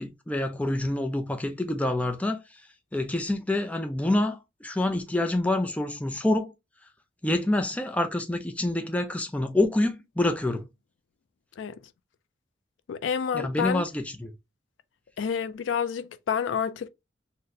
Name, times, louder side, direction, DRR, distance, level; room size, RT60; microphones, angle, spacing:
voice 1, 0.0-2.4 2.9-6.5 7.2-10.7 13.3-14.3, left 1 dB, 5° left, 0.4 m, -27 dB
voice 2, 12.9-13.8 15.2-16.9, left 7 dB, 80° left, 0.4 m, -29 dB
4.0 x 2.1 x 2.6 m
head